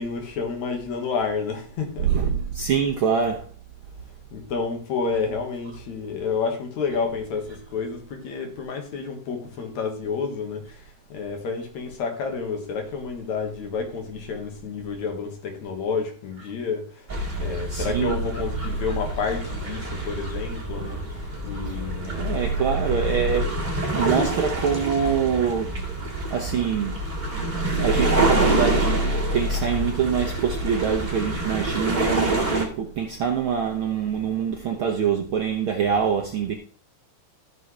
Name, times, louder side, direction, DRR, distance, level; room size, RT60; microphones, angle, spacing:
voice 1, 0.0-2.1 4.3-10.6 11.1-16.8 17.4-21.0 21.4-22.2, left 5 dB, 70° left, 2.8 m, -29 dB
voice 2, 2.1-3.4 17.7-18.1 21.6-21.8 22.0-23.5 23.9-25.8 26.3-27.0 27.8-29.0 29.3-36.5, right 7 dB, 75° right, 1.2 m, -25 dB
sound 1, 17.1-32.7, right 2 dB, 20° right, 1.5 m, -26 dB
14.5 x 6.1 x 3.2 m
omnidirectional pair, 3.5 m